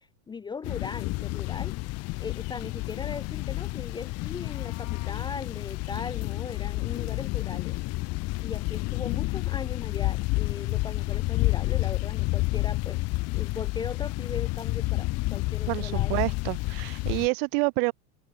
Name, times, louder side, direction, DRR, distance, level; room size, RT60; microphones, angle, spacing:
voice 1, 0.0-1.8 2.2-7.8 8.4-13.0 13.3-16.2, left 5 dB, 10° left, 1.0 m, -39 dB
sound 1, 0.6-17.3, left 22 dB, 35° left, 1.4 m, -30 dB
Meow, 4.1-5.2, left 32 dB, 50° left, 3.8 m, -51 dB
voice 2, 15.7-17.9, right 33 dB, 45° right, 0.7 m, -28 dB
supercardioid pair, 170°, 43 cm